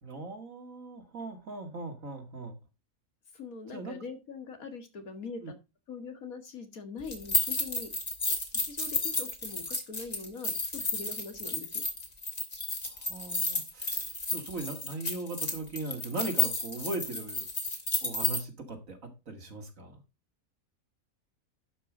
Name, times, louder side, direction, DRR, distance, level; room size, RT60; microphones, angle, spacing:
voice 1, 0.0-2.6 3.7-4.0 5.4-5.5 12.8-17.4 18.0-19.0 19.3-20.0, right 2 dB, 70° right, 5 dB, 2.5 m, -39 dB
voice 2, 3.3-5.5 5.9-7.9 8.7-11.8, left 4 dB, 90° left, 7 dB, 2.3 m, -42 dB
sound 1, 7.1-18.4, left 3 dB, 30° left, 2.1 m, -32 dB
11.5 x 5.3 x 5.0 m, 0.26 s
omnidirectional pair, 1.4 m